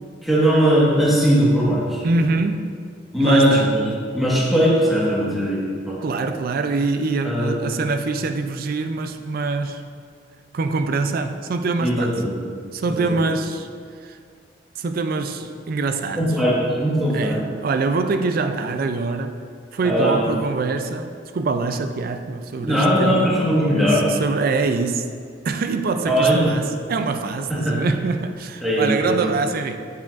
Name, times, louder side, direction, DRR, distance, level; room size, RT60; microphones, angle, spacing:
voice 1, 0.2-2.0 3.1-3.9 4.1-6.0 7.2-7.8 11.8-12.4 12.9-13.2 16.2-17.4 19.8-20.3 22.6-24.0 26.1-26.4 27.5-27.8 28.6-29.2, equal, ahead, 1.4 m, -19 dB
voice 2, 2.0-2.7 3.2-3.7 6.0-9.8 10.5-12.2 12.7-13.7 14.0-14.2 14.8-16.3 17.1-19.4 19.7-23.4 23.9-25.1 25.4-29.8, right 3 dB, 50° right, 0.4 m, -24 dB
7.4 x 7.2 x 2.5 m
head